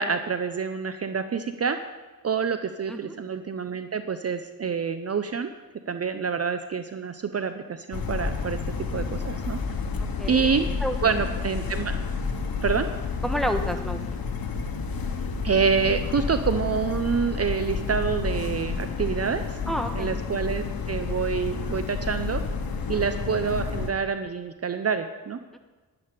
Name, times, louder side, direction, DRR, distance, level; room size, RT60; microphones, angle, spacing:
voice 1, 0.0-1.8 2.2-5.5 5.9-8.6 8.9-9.6 10.3-10.7 11.0-12.0 12.6-12.9 15.4-19.6 19.9-22.4 22.9-25.4, right 6 dB, 45° right, 9 dB, 0.6 m, -27 dB
sound 1, 7.9-23.9, left 4 dB, 80° left, 1.2 m, -30 dB
voice 2, 10.0-10.5 10.8-11.0 13.2-14.0 19.7-20.1 22.8-23.0, equal, ahead, 5 dB, 1.3 m, -29 dB
11.0 x 10.5 x 5.1 m, 1.3 s
cardioid pair, 80°, 35 cm